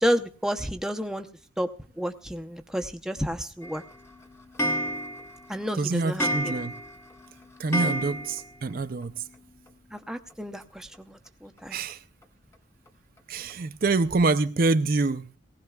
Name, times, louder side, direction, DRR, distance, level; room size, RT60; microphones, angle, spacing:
voice 1, 0.0-1.3 1.6-1.7 2.0-3.8 5.5-6.5 7.7-7.9 9.9-11.8, equal, 5° right, 0.7 m, -30 dB
Clock, 3.6-8.7 9.0-9.1 9.3-9.4 9.7-9.8 10.9-11.0 11.6-11.7 12.2-12.3 12.9-13.0 13.5-13.6 14.1-14.2, equal, 15° left, 1.0 m, -31 dB
voice 2, 5.8-6.7 7.6-9.2 11.7-12.0 13.3-15.3, right 3 dB, 45° right, 0.5 m, -26 dB
19.0 x 17.5 x 2.3 m
head